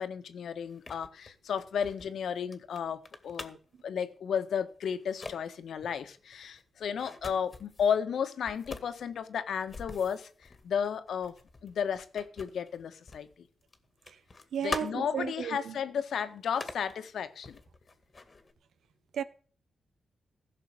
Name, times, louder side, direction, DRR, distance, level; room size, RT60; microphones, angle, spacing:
voice 1, 0.0-3.6 3.8-10.3 10.6-11.3 11.6-13.3 14.6-17.6, left 7 dB, 80° left, 1.6 m, -33 dB
sound 1, 0.7-3.8 4.5-4.7 5.0-5.4 5.8-8.0 8.5-13.3 13.6-15.3 15.7-15.8 16.4-17.0 17.4-18.5, left 3 dB, 35° left, 2.1 m, -44 dB
voice 2, 14.5-15.6 19.1-19.2, right 8 dB, 80° right, 1.1 m, -33 dB
15.5 x 6.7 x 8.0 m
cardioid pair, 100°, 0 cm